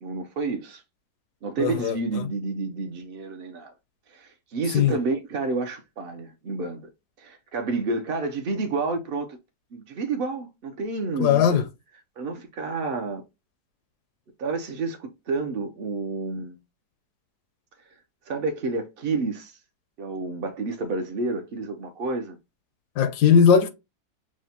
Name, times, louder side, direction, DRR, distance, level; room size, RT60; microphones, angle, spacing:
voice 1, 0.0-0.8 1.4-3.7 4.1-6.8 7.2-9.4 9.7-11.6 12.2-13.2 14.4-16.6 18.3-19.5 20.0-22.4, right 3 dB, 65° right, 0.5 m, -30 dB
voice 2, 1.6-2.0 4.7-5.0 11.2-11.6 23.0-23.7, left 7 dB, 85° left, 1.2 m, -18 dB
6.0 x 2.1 x 2.7 m
omnidirectional pair, 1.7 m